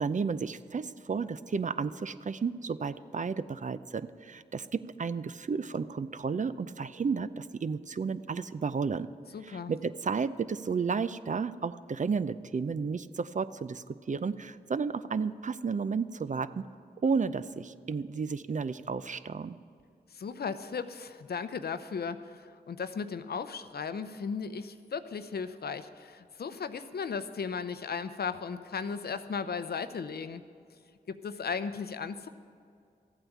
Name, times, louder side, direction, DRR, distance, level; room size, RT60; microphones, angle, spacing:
voice 1, 0.0-9.1 9.4-16.6 17.0-19.6, right 5 dB, 45° right, 14 dB, 0.5 m, -32 dB
voice 2, 9.3-9.7 20.1-30.4 31.1-32.3, left 5 dB, 70° left, 11 dB, 0.7 m, -36 dB
13.5 x 8.9 x 7.2 m, 2.3 s
cardioid pair, 40°, 17 cm